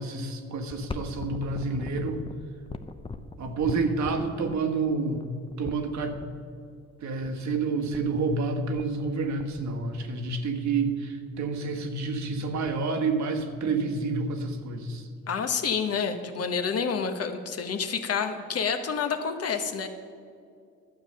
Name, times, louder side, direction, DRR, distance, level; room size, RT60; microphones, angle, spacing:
voice 1, 0.0-2.2 3.4-5.2 5.6-6.2 7.0-15.1, right 4 dB, 65° right, 4 dB, 1.5 m, -29 dB
sound 1, 0.6-6.3 7.2-7.3 7.6-7.7 7.9-8.4 8.7-9.1 9.4-10.3 10.8-10.9 11.3-11.6 12.0-12.1 12.3-12.9 13.4-14.2 14.6-14.7 15.5-15.6, left 3 dB, 20° left, 0.7 m, -40 dB
voice 2, 15.3-19.9, left 6 dB, 50° left, 6 dB, 1.2 m, -28 dB
12.0 x 7.5 x 6.6 m, 2.4 s
cardioid pair, 90°, 30 cm